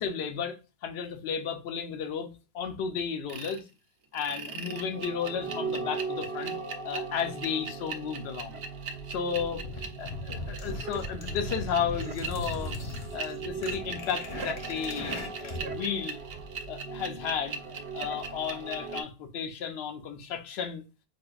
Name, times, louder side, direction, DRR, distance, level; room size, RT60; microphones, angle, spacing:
voice 1, 0.0-3.6 4.1-6.6 6.8-8.6 9.1-12.8 13.1-16.2 16.7-17.6 17.9-20.9, left 7 dB, 75° left, 0.8 m, -33 dB
sound 1, 3.3-3.6 4.1-19.0, right 4 dB, 70° right, 0.8 m, -38 dB
sound 2, 9.3-15.7, left 2 dB, 35° left, 0.6 m, -38 dB
4.4 x 2.4 x 2.3 m
omnidirectional pair, 1.1 m